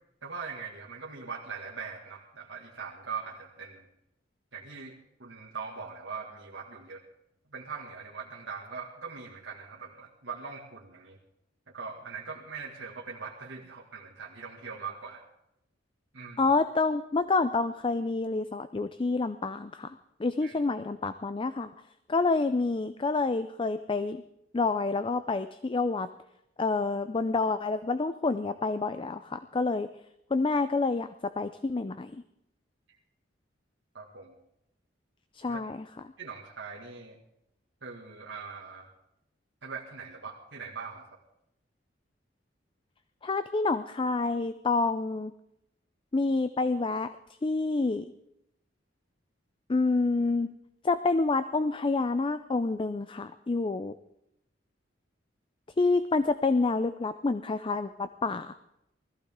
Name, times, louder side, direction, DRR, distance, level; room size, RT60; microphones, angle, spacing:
voice 1, 0.2-3.9 4.5-7.0 7.5-11.2 11.7-15.2 16.1-16.4 20.4-20.5 33.9-34.4 35.5-35.6 36.2-37.2 37.8-38.9 39.6-41.2, right 5 dB, 80° right, -4 dB, 1.9 m, -41 dB
voice 2, 16.4-21.7 22.1-24.2 24.5-26.1 26.6-29.9 30.3-32.2 35.3-35.9 43.2-45.3 46.1-47.1 47.4-48.1 49.7-50.5 50.8-53.9 55.8-58.5, left 3 dB, 25° left, 12 dB, 0.4 m, -28 dB
20.0 x 14.5 x 3.7 m, 0.83 s
head